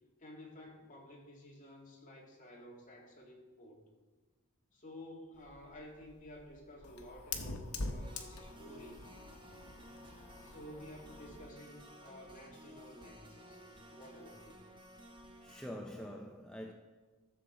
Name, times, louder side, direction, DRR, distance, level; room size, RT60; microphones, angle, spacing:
voice 1, 0.2-3.8 4.7-9.0 10.4-14.6, left 1 dB, 35° left, -2 dB, 2.1 m, -53 dB
Fire, 5.3-11.6, left 3 dB, 85° left, 1.1 m, -45 dB
sound 1, 8.0-15.7, equal, 20° right, 1.1 m, -55 dB
voice 2, 15.4-16.7, equal, 5° left, 1 dB, 0.5 m, -45 dB
14.0 x 7.2 x 3.9 m, 1.3 s
head